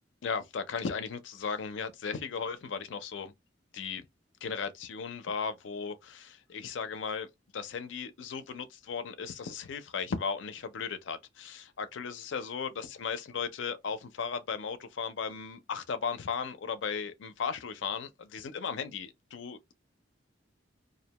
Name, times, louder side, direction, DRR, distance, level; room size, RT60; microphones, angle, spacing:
voice 1, 0.2-3.3 3.7-4.0 4.4-7.3 7.5-19.7, left 6 dB, 80° left, 0.4 m, -36 dB
2.5 x 2.1 x 2.8 m
head